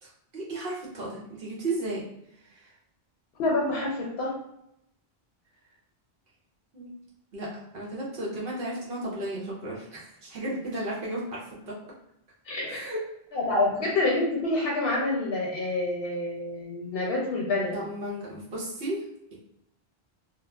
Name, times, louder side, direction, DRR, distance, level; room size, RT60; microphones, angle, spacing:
voice 1, 0.0-2.0 2.4-2.7 6.7-6.9 7.3-11.7 12.7-13.0 17.7-19.0, right 1 dB, 70° right, -5 dB, 1.1 m, -34 dB
voice 2, 3.4-4.3 12.5-12.8 13.3-17.7, left 2 dB, 75° left, -3 dB, 0.8 m, -27 dB
2.9 x 2.0 x 2.3 m, 0.79 s
omnidirectional pair, 1.1 m